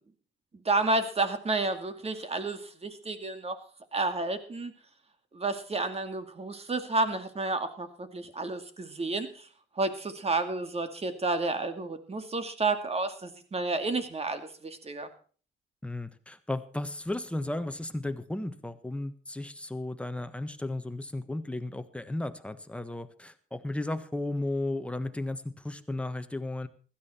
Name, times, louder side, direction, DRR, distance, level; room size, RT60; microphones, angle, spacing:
voice 1, 0.6-3.6 3.9-4.7 5.3-9.5 9.8-15.1, right 3 dB, 30° right, 9 dB, 2.3 m, -31 dB
voice 2, 15.8-26.7, left 2 dB, 5° left, 9 dB, 1.4 m, -34 dB
16.0 x 13.0 x 4.4 m, 0.40 s
cardioid pair, 90°, 20 cm